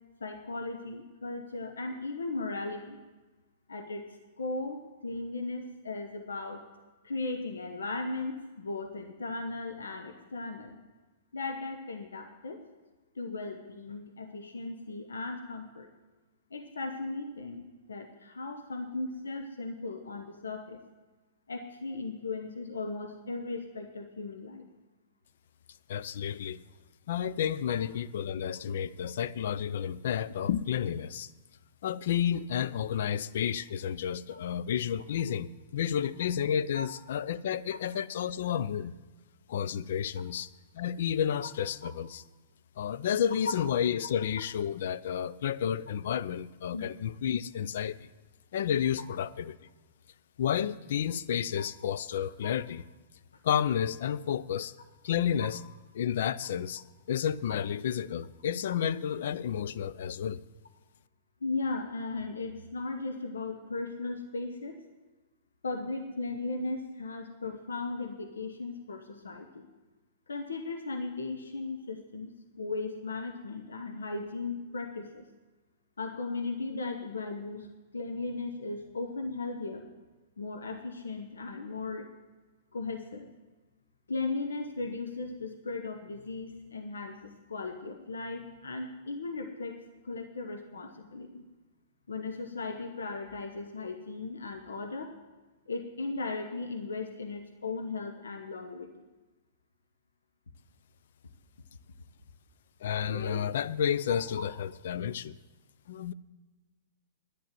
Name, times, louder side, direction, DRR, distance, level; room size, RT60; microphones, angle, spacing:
voice 1, 0.2-3.0 3.7-4.1 4.4-6.7 7.0-10.8 11.3-12.6 13.1-15.9 16.5-20.8 21.5-24.6 27.7-27.8 34.3-34.4 36.7-36.9 44.0-44.1 46.7-46.9 49.0-49.1 51.6-51.7 52.4-52.5 54.0-54.1 55.4-55.5 61.4-64.8 65.6-69.7 70.3-75.2 76.0-77.7 77.9-79.8 80.4-82.1 82.7-83.3 84.1-89.8 90.0-91.4 92.1-95.1 95.7-98.9 103.1-103.4 104.1-104.5, left 3 dB, 85° left, 5 dB, 1.1 m, -37 dB
voice 2, 25.9-26.6 27.1-31.3 31.8-38.9 39.5-40.5 40.7-42.2 42.8-48.0 48.5-49.6 50.4-52.8 53.4-54.7 55.0-55.6 55.9-60.4 102.8-105.3 105.9-106.1, left 9 dB, 65° left, 16 dB, 0.5 m, -31 dB
10.5 x 10.0 x 7.6 m, 1.2 s
hypercardioid pair, 110°, 0 cm